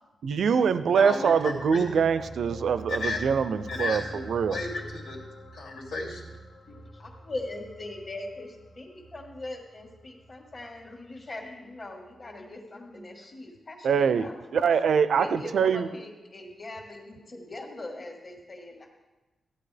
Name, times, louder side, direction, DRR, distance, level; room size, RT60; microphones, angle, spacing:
voice 1, 0.2-4.6 13.8-15.9, right 6 dB, 65° right, 13 dB, 0.5 m, -24 dB
voice 2, 0.9-1.3 1.7-1.8 2.9-3.2 3.7-4.2 4.5-5.2 5.5-6.3, left 3 dB, 90° left, -2 dB, 2.6 m, -33 dB
sound 1, 1.2-11.8 12.1-12.2, right 1 dB, 60° left, 1.3 m, -46 dB
voice 3, 6.7-14.7 15.2-18.9, left 2 dB, 30° left, 0 dB, 1.6 m, -41 dB
15.0 x 9.9 x 3.4 m, 1.1 s
wide cardioid pair, 175°, 0 cm